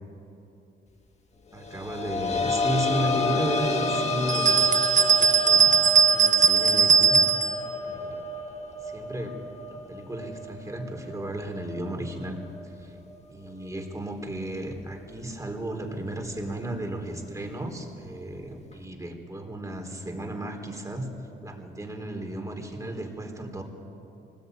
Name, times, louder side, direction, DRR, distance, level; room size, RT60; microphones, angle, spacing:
voice 1, 1.5-5.8 6.1-7.5 7.8-8.2 8.8-9.4 9.7-12.4 12.6-12.9 13.3-21.1 21.4-23.6, right 1 dB, 15° right, 3 dB, 4.1 m, -34 dB
sound 1, 1.7-13.1 13.5-13.6 15.1-15.2, left 2 dB, 35° left, 1.7 m, -31 dB
sound 2, 4.3-7.6, right 6 dB, 40° right, 1.0 m, -19 dB
24.5 x 20.0 x 9.4 m, 2.8 s
cardioid pair, 90°, 20 cm